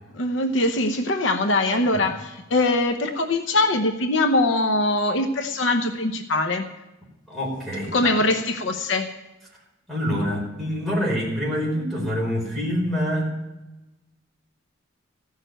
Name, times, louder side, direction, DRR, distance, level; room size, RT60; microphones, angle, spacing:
voice 1, 0.1-6.7 7.9-9.1, left 2 dB, 65° left, 7 dB, 0.8 m, -22 dB
voice 2, 7.3-8.0 9.9-13.3, equal, ahead, -4 dB, 4.5 m, -26 dB
15.5 x 6.6 x 9.0 m, 1.0 s
head